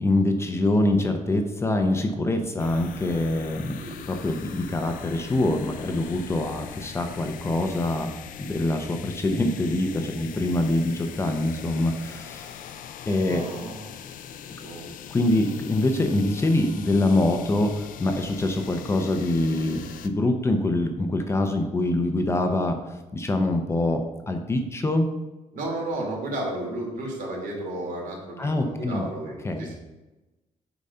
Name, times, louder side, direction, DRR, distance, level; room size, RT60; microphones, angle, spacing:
voice 1, 0.0-3.8 4.1-8.1 8.4-12.6 13.1-13.4 15.1-22.8 23.1-25.1 28.4-29.1 29.4-29.7, left 2 dB, 20° left, 5 dB, 0.7 m, -24 dB
sound 1, 2.6-20.1, left 8 dB, 80° left, 0.6 m, -41 dB
voice 2, 13.2-13.9 14.6-14.9 15.4-15.5 25.5-29.7, right 1 dB, 80° right, -2 dB, 3.0 m, -33 dB
8.5 x 4.1 x 5.5 m, 1.1 s
cardioid pair, 160°, 14 cm